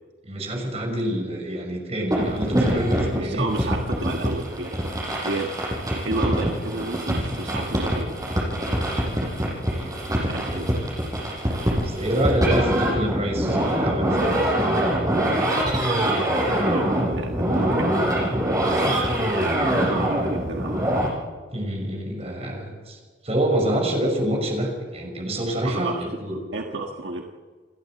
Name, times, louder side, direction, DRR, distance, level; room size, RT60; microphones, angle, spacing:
voice 1, 0.2-3.5 9.1-9.9 10.3-10.6 11.8-14.7 18.7-19.1 21.5-26.4, right 1 dB, 35° right, 2 dB, 6.1 m, -27 dB
sound 1, 2.1-21.1, right 1 dB, 20° right, 7.8 m, -24 dB
voice 2, 3.1-4.7 5.2-5.5 5.9-8.2 10.2-10.7 15.8-18.1 19.2-20.8 25.6-26.1 26.5-27.2, right 2 dB, 70° right, 2 dB, 1.5 m, -31 dB
29.5 x 12.0 x 7.7 m, 1.4 s
head